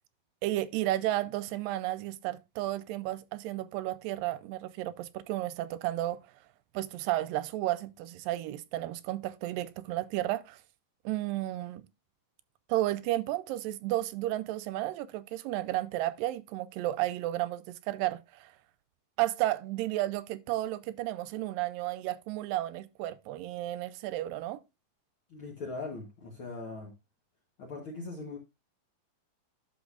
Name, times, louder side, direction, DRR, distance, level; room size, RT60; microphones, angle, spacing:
voice 1, 0.4-6.2 6.7-10.6 11.1-11.8 12.7-18.5 19.2-24.6, right 15 dB, 85° right, 2.3 m, -32 dB
voice 2, 25.3-26.9 27.6-28.4, left 3 dB, 60° left, 1.3 m, -40 dB
11.5 x 6.1 x 2.4 m
omnidirectional pair, 4.0 m